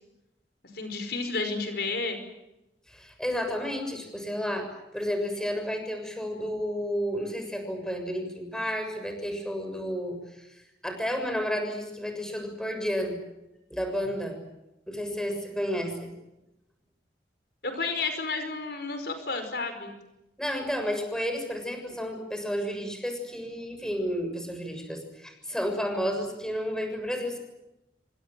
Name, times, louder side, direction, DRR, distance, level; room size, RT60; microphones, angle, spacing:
voice 1, 0.7-2.2 17.6-20.0, left 3 dB, 65° left, 7 dB, 5.2 m, -31 dB
voice 2, 2.9-13.2 13.7-14.4 14.9-16.1 20.4-27.4, equal, 5° left, 5 dB, 6.9 m, -31 dB
28.5 x 25.5 x 7.7 m, 0.93 s
head